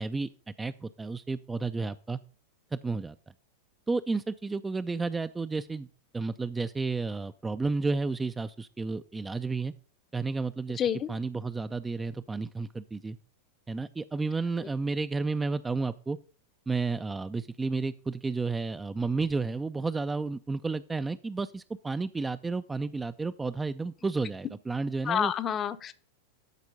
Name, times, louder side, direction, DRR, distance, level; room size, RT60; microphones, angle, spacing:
voice 1, 0.0-2.2 2.7-3.1 3.9-5.9 6.1-9.7 10.1-10.8 11.1-13.2 13.7-16.2 16.7-25.3, right 3 dB, 10° right, 11 dB, 0.3 m, -32 dB
voice 2, 10.8-11.1 25.1-25.9, left 9 dB, 25° left, 13 dB, 0.6 m, -28 dB
12.0 x 4.4 x 5.3 m, 0.40 s
figure-of-eight pair, 90°, 0 cm